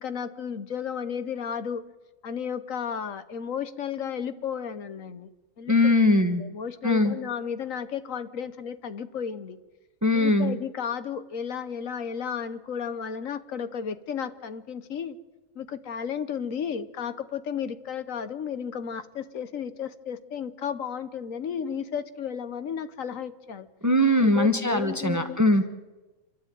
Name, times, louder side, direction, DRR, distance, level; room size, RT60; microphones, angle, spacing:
voice 1, 0.0-1.8 2.2-5.3 5.6-5.9 6.4-9.6 10.1-15.2 15.5-23.7 24.2-25.4, left 7 dB, 70° left, 12 dB, 1.4 m, -33 dB
voice 2, 5.7-6.4 6.8-7.1 10.0-10.5 23.8-25.7, left 1 dB, 15° right, 8 dB, 1.0 m, -21 dB
27.0 x 12.5 x 9.2 m, 1.2 s
omnidirectional pair, 1.5 m